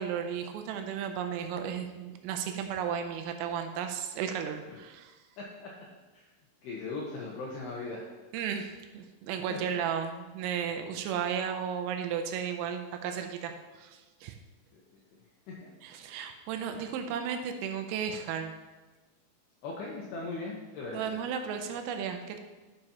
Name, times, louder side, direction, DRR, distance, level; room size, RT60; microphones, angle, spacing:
voice 1, 0.0-5.2 8.3-14.4 15.8-18.5 20.9-22.4, right 8 dB, 85° right, 6 dB, 3.2 m, -34 dB
voice 2, 5.4-5.7 6.1-6.3 6.6-8.1 9.5-9.6 14.7-14.8 15.5-15.7 16.6-16.9 19.6-21.3, left 3 dB, 85° left, -3 dB, 2.4 m, -39 dB
11.5 x 6.7 x 2.9 m, 1.2 s
omnidirectional pair, 5.9 m